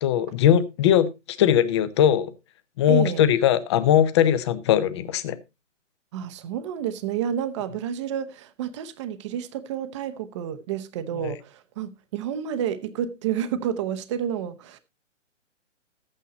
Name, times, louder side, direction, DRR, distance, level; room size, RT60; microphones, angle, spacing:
voice 1, 0.0-2.3 2.8-5.4 11.2-11.3, left 10 dB, 20° left, 0.7 m, -20 dB
voice 2, 2.9-3.2 6.1-14.8, right 9 dB, 25° right, 0.8 m, -30 dB
12.5 x 8.8 x 4.0 m
hypercardioid pair, 145°, 38 cm